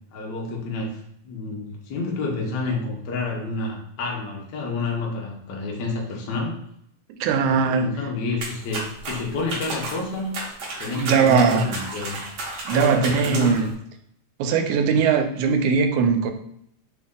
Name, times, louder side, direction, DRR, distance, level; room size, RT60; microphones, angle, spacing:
voice 1, 0.1-0.9 1.2-6.6 7.4-10.3 10.8-12.2 12.7-13.7, left 3 dB, 75° left, -1 dB, 0.9 m, -29 dB
voice 2, 7.2-8.1 11.0-11.7 12.7-13.7 14.4-16.3, right 6 dB, 90° right, 6 dB, 2.0 m, -20 dB
sound 1, 8.4-13.7, right 2 dB, 70° right, 0.9 m, -33 dB
4.4 x 2.6 x 3.6 m, 0.71 s
omnidirectional pair, 3.3 m